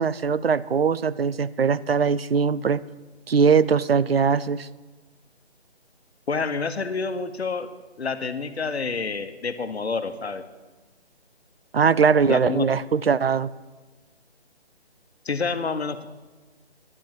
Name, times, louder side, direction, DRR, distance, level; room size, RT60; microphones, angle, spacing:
voice 1, 0.0-2.8 3.3-4.7 11.7-13.5, right 6 dB, 60° right, 17 dB, 0.4 m, -21 dB
voice 2, 6.3-7.7 8.0-10.4 12.3-12.7 15.2-16.1, left 4 dB, 70° left, 10 dB, 1.1 m, -28 dB
11.0 x 7.8 x 7.5 m, 1.2 s
hypercardioid pair, 180°, 33 cm